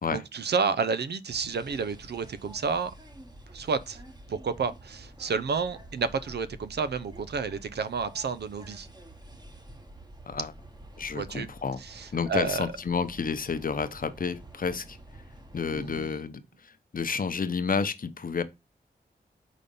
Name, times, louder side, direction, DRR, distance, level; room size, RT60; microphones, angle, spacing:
voice 1, 0.1-2.9 3.5-4.0 4.3-8.9 11.1-11.5 11.8-12.7 15.6-16.1, right 5 dB, 75° right, 0.7 m, -30 dB
sound 1, 1.3-16.0, right 1 dB, 25° right, 1.3 m, -49 dB
voice 2, 11.0-11.8 12.1-15.0 15.5-18.4, left 5 dB, 55° left, 0.8 m, -30 dB
5.1 x 4.2 x 5.4 m
cardioid pair, 55°, 18 cm